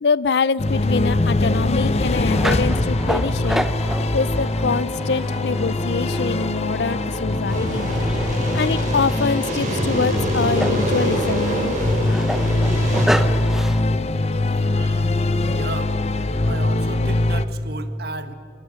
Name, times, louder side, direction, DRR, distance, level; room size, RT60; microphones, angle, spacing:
voice 1, 0.0-3.7 4.1-7.9 8.5-11.8, left 5 dB, 75° left, 21 dB, 0.5 m, -24 dB
sound 1, 0.6-17.4, left 2 dB, 35° left, 0.8 m, -22 dB
sound 2, 2.3-13.8, equal, ahead, 0.6 m, -31 dB
sound 3, 7.5-13.1, right 1 dB, 45° right, 5.3 m, -26 dB
voice 2, 14.5-15.1 15.5-16.0 16.4-18.3, right 3 dB, 60° right, 10 dB, 1.6 m, -34 dB
26.0 x 24.0 x 6.4 m, 2.9 s
head